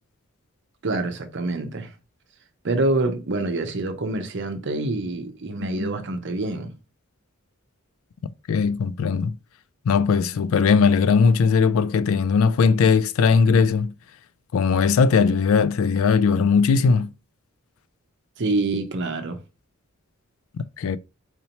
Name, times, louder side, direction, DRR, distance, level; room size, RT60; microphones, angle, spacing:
voice 1, 0.8-1.9 2.6-6.7 18.4-19.4, right 2 dB, 55° right, 0.7 m, -26 dB
voice 2, 8.5-9.4 9.9-13.9 14.5-17.1 20.6-21.0, left 5 dB, 65° left, 0.3 m, -19 dB
4.3 x 2.8 x 2.8 m
head